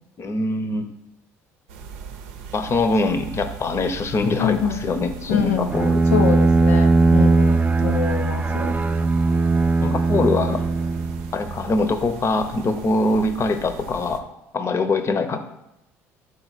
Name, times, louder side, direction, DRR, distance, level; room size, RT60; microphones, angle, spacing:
voice 1, 0.2-0.9 2.5-6.0 9.8-10.6 11.3-14.2 14.5-15.4, left 3 dB, 40° left, 9 dB, 0.8 m, -23 dB
sound 1, 1.7-14.2, right 5 dB, 80° right, 0.6 m, -38 dB
voice 2, 4.4-4.9 5.3-5.7 6.1-8.7, left 7 dB, 85° left, 4 dB, 0.5 m, -25 dB
Bowed string instrument, 5.7-11.5, right 3 dB, 20° right, 0.4 m, -19 dB
6.7 x 4.1 x 4.1 m, 0.86 s
hypercardioid pair, 65°, 7 cm